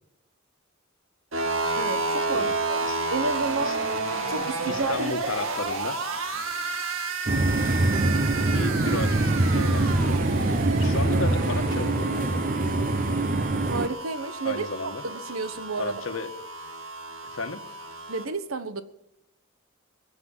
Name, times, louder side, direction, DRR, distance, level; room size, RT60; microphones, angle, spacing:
sound 1, 1.3-18.3, right 3 dB, 70° right, 2.1 m, -31 dB
voice 1, 1.8-2.8 3.1-3.8 4.3-5.3 13.7-16.0 18.1-18.8, right 3 dB, 90° right, 12 dB, 1.3 m, -31 dB
voice 2, 4.7-6.0 8.5-10.2 10.8-12.4 14.4-15.0 15.8-16.3 17.2-17.6, left 3 dB, 70° left, 9 dB, 1.4 m, -33 dB
sound 2, 7.3-13.9, right 2 dB, 40° right, 0.9 m, -24 dB
22.0 x 8.0 x 7.3 m, 0.92 s
head